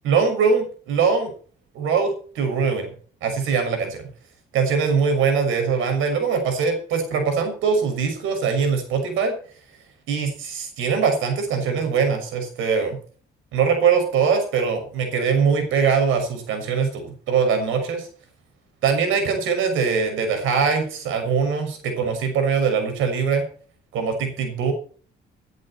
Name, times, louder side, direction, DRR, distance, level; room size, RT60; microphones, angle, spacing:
voice 1, 0.0-1.3 1.7-2.9 3.2-4.0 4.5-9.4 10.1-13.0 13.5-18.1 18.8-23.4 23.9-24.7, right 6 dB, 90° right, 7 dB, 6.3 m, -22 dB
19.5 x 11.0 x 4.4 m, 0.43 s
cardioid pair, 90°, 20 cm